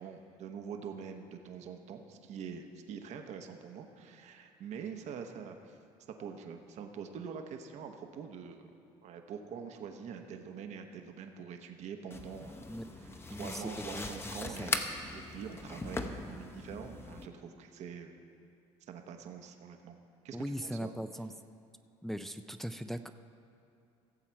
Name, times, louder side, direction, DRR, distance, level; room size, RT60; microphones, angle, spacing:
voice 1, 0.0-5.8 6.2-8.8 9.0-12.7 13.0-14.8 15.1-18.2 18.9-19.9 20.2-20.9, right 6 dB, 60° right, 5 dB, 0.9 m, -45 dB
sound 1, 12.1-17.3, left 2 dB, 20° left, 0.8 m, -40 dB
voice 2, 13.3-14.7 20.3-21.3 22.0-23.1, equal, ahead, 9 dB, 0.4 m, -40 dB
16.0 x 7.2 x 4.5 m, 2.6 s
supercardioid pair, 90°, 13 cm